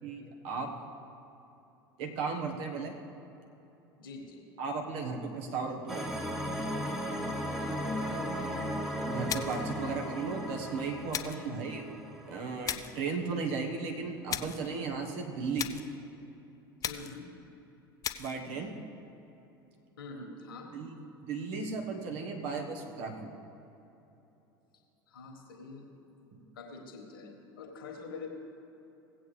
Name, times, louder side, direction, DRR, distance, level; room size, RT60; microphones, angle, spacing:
voice 1, 0.0-0.7 2.0-3.0 4.6-6.1 9.0-11.8 12.2-15.7 18.2-18.8 20.7-20.9 21.2-23.4 26.3-26.4, right 4 dB, 55° right, 2 dB, 1.4 m, -35 dB
voice 2, 4.0-4.4 7.5-8.6 16.8-17.3 20.0-20.7 25.1-25.9 26.5-28.3, left 4 dB, 70° left, 2 dB, 1.6 m, -46 dB
sound 1, 5.9-13.0, equal, 5° right, 1.2 m, -36 dB
sound 2, 9.3-9.7 11.1-11.5 12.7-13.0 14.3-14.7 15.6-16.0 16.8-17.3 18.0-18.4, left 8 dB, 30° left, 0.5 m, -36 dB
17.5 x 8.2 x 3.3 m, 3.0 s
figure-of-eight pair, 75°, 12 cm